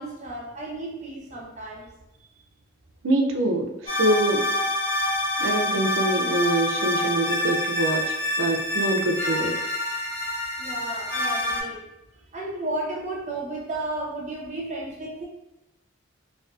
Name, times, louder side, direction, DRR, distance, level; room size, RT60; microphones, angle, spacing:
voice 1, 0.0-1.8 10.6-11.8 12.3-15.2, right 2 dB, 35° right, -2 dB, 0.6 m, -33 dB
voice 2, 3.0-4.5 5.4-9.6, right 1 dB, 80° right, 3 dB, 0.4 m, -25 dB
sound 1, 3.9-11.6, left 1 dB, 30° left, 0.7 m, -26 dB
2.5 x 2.3 x 2.3 m, 0.91 s
head